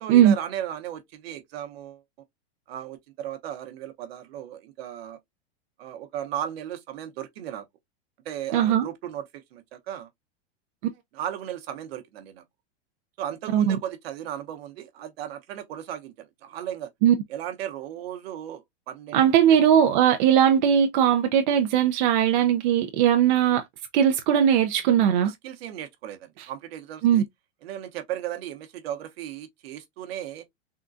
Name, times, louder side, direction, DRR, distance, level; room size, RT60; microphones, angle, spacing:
voice 1, 0.0-2.0 2.7-5.2 5.8-7.7 8.2-10.1 11.1-12.4 13.2-16.9 17.3-19.6 25.2-27.2 27.6-30.4, right 11 dB, 65° right, 0.9 m, -36 dB
voice 2, 8.5-8.9 13.5-13.8 17.0-17.1 19.1-23.6 23.9-25.3 27.0-27.2, right 9 dB, 45° right, 0.5 m, -19 dB
3.7 x 2.2 x 2.5 m
supercardioid pair, 155°, 33 cm